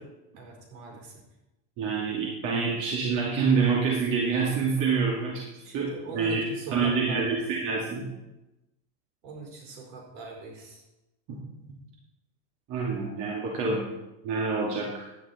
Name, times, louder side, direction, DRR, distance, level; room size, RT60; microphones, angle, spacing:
voice 1, 0.3-1.1 5.6-7.5 9.2-10.8, right 3 dB, 80° right, 0 dB, 4.7 m, -41 dB
voice 2, 1.8-5.4 5.7-6.4 6.7-8.1 11.3-11.4 12.7-13.8 14.2-15.1, right 5 dB, 55° right, -3 dB, 2.5 m, -27 dB
11.0 x 9.3 x 4.4 m, 0.95 s
supercardioid pair, 125°, 37 cm